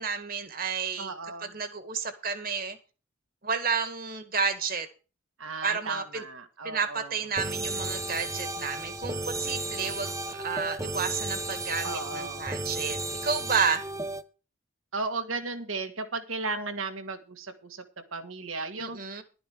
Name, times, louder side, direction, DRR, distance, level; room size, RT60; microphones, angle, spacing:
voice 1, 0.0-1.1 1.4-2.8 3.4-4.9 5.6-6.3 6.6-13.8 18.8-19.2, right 5 dB, 45° right, 11 dB, 2.0 m, -31 dB
voice 2, 1.0-1.5 5.4-7.2 9.8-10.1 11.8-12.5 14.9-17.8 18.1-19.0, right 3 dB, 80° right, 8 dB, 2.2 m, -35 dB
sound 1, 7.4-14.2, right 2 dB, 15° right, 0.7 m, -34 dB
12.0 x 10.5 x 4.7 m, 0.33 s
head